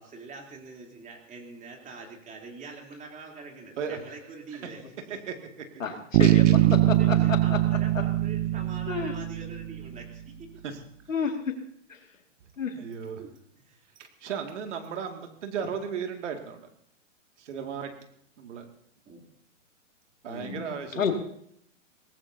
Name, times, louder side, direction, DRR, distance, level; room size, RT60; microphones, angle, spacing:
voice 1, 0.0-5.2 6.5-10.3 13.2-13.3 13.5-13.8 19.0-19.2, right 4 dB, 20° right, 1 dB, 3.4 m, -44 dB
voice 2, 5.8-6.6 7.1-7.2 8.9-9.1 11.1-11.6 11.9-12.0 12.6-12.8 20.3-20.7 21.0-21.1, left 6 dB, 80° left, 4 dB, 2.3 m, -30 dB
Bass guitar, 6.1-9.8, right 15 dB, 40° right, 0.7 m, -22 dB
voice 3, 12.7-13.2 14.2-16.6 17.4-17.9 18.4-18.6 20.2-21.0, right 7 dB, 65° right, 4 dB, 2.3 m, -35 dB
23.0 x 18.0 x 2.8 m, 0.69 s
hypercardioid pair, 115°, 38 cm